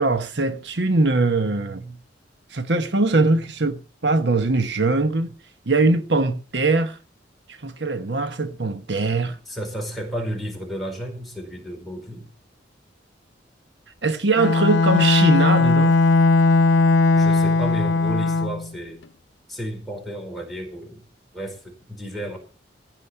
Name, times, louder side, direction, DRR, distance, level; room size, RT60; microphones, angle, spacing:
voice 1, 0.0-2.0 2.5-5.3 5.7-7.0 7.5-9.4 14.0-16.0, right 3 dB, 70° right, 1.1 m, -21 dB
voice 2, 9.5-12.3 17.1-19.0 19.5-21.0 21.3-22.4, equal, ahead, 4.6 m, -32 dB
Bowed string instrument, 14.4-18.7, left 3 dB, 80° left, 0.6 m, -18 dB
15.5 x 5.2 x 9.7 m
head